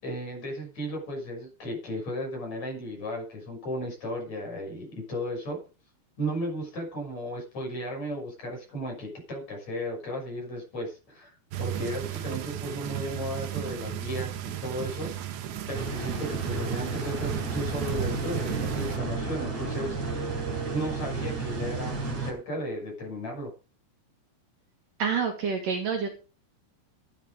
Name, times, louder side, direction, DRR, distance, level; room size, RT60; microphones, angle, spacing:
voice 1, 0.0-5.6 6.2-15.1 15.7-20.3 20.7-23.5, equal, 40° left, 0 dB, 7.5 m, -35 dB
sound 1, 11.5-19.0, right 10 dB, 80° right, 3.4 m, -34 dB
sound 2, 15.7-22.3, right 4 dB, 40° right, 4.8 m, -32 dB
voice 2, 25.0-26.1, right 6 dB, 55° right, 3 dB, 3.2 m, -27 dB
14.0 x 9.1 x 5.2 m, 0.35 s
omnidirectional pair, 4.9 m